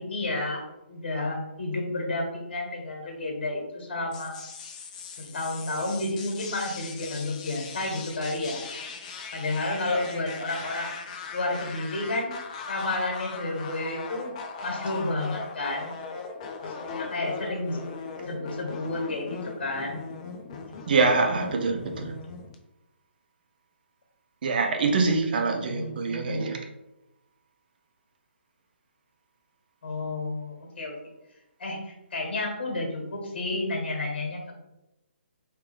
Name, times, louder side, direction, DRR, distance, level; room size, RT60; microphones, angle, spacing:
voice 1, 0.0-4.4 5.2-8.6 9.3-10.9 11.3-12.3 12.7-14.3 14.6-15.9 16.6-17.8 18.2-20.0 25.7-26.5 29.8-30.9 31.6-34.5, left 2 dB, 55° left, 0 dB, 1.5 m, -31 dB
sound 1, 4.1-22.5, left 5 dB, 35° left, 0.5 m, -39 dB
voice 2, 20.9-22.1 24.4-26.6, right 4 dB, 50° right, 3 dB, 0.6 m, -24 dB
3.4 x 2.9 x 3.3 m, 0.93 s
figure-of-eight pair, 140°, 6 cm